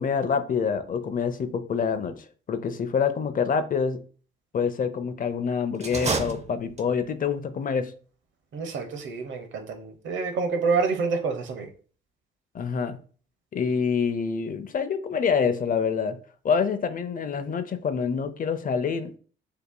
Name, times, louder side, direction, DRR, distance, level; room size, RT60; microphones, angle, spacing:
voice 1, 0.0-2.1 2.5-4.0 4.5-7.9 12.5-13.0 13.5-16.2 16.4-19.2, left 6 dB, 40° left, 0.6 m, -26 dB
sound 1, 5.8-7.1, right 4 dB, 30° right, 0.7 m, -30 dB
voice 2, 8.5-11.7, right 4 dB, 65° right, 0.9 m, -27 dB
6.7 x 2.8 x 2.2 m
supercardioid pair, 75°, 21 cm